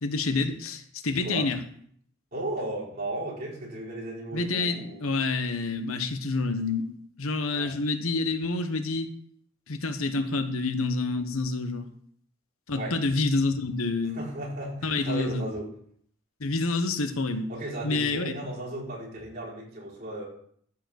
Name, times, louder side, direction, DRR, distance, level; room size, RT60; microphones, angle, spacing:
voice 1, 0.0-1.6 4.3-9.1 9.7-11.9 12.7-14.2 14.8-15.4 16.4-17.5 17.8-18.4, left 3 dB, 90° left, 9 dB, 1.1 m, -28 dB
voice 2, 1.1-1.5 2.3-5.2 7.5-7.7 12.8-13.0 14.1-15.7 17.5-20.3, right 1 dB, 45° right, -7 dB, 5.2 m, -35 dB
13.5 x 4.9 x 6.5 m, 0.63 s
head